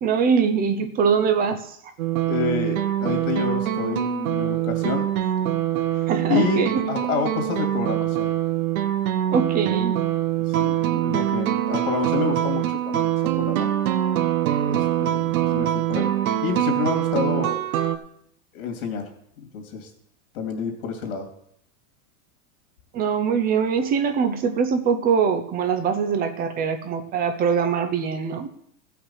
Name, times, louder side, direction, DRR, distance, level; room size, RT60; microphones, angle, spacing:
voice 1, 0.0-1.8 6.1-6.8 9.3-10.0 22.9-28.5, right 6 dB, 20° right, 9 dB, 0.7 m, -23 dB
sound 1, 2.0-18.0, right 12 dB, 70° right, 1.0 m, -24 dB
voice 2, 2.3-5.1 5.9-6.0 6.3-6.6 6.9-8.3 10.5-13.1 13.4-13.7 14.6-16.1 16.4-17.6 18.5-19.0 19.5-19.9 20.3-21.3, left 6 dB, 70° left, 4 dB, 2.7 m, -28 dB
15.0 x 6.0 x 5.6 m, 0.70 s
supercardioid pair, 155°, 43 cm